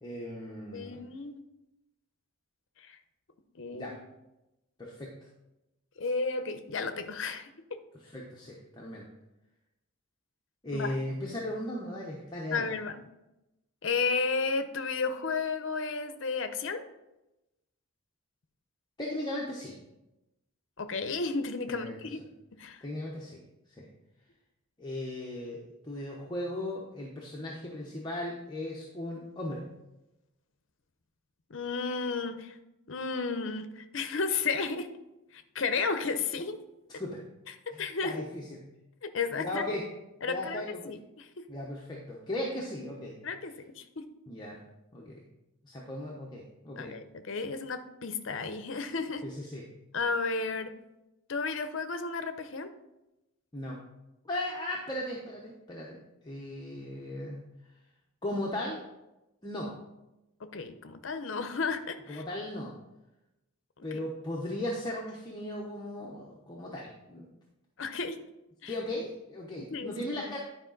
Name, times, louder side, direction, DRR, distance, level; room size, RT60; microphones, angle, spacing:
voice 1, 0.0-1.1 3.7-3.9 4.8-5.1 8.0-9.1 10.6-12.7 19.0-19.8 21.7-22.0 22.8-23.4 23.8-23.9 24.8-29.6 36.9-37.2 37.7-38.6 39.3-39.8 40.2-40.8 41.5-43.2 44.3-44.6 44.9-45.2 45.6-46.9 49.2-49.6 53.5-53.8 54.2-57.4 58.2-58.8 59.4-59.7 62.1-62.7 63.8-67.3 68.7-70.4, left 1 dB, 20° left, -3 dB, 0.8 m, -37 dB
voice 2, 0.7-1.4 2.8-3.0 3.6-4.0 6.0-7.5 10.7-11.0 12.5-13.0 13.8-16.8 20.8-22.2 22.6-22.8 31.5-32.6 32.9-34.9 35.3-36.6 37.8-38.2 39.0-39.6 40.2-41.5 43.2-44.1 46.8-49.3 49.9-50.7 51.3-52.7 60.5-62.2 63.8-63.9 67.8-68.2 68.6-68.7 69.6-70.3, left 4 dB, 60° left, 9 dB, 0.7 m, -33 dB
9.9 x 4.9 x 3.9 m, 0.95 s
head